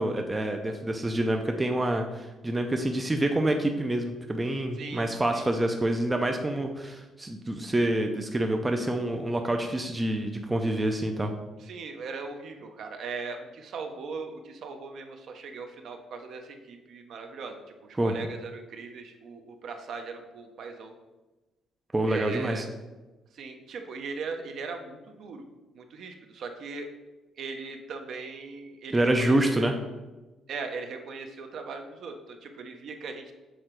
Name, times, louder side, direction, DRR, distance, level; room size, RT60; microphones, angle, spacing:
voice 1, 0.0-11.3 18.0-18.1 21.9-22.6 28.9-29.7, right 1 dB, 15° right, 4 dB, 0.4 m, -27 dB
voice 2, 4.8-5.5 11.6-20.9 22.0-22.6 23.3-25.5 25.7-26.9 27.4-29.7 30.5-33.2, right 4 dB, 55° right, 5 dB, 0.7 m, -39 dB
6.5 x 3.8 x 4.4 m, 1.1 s
cardioid pair, 150°, 0 cm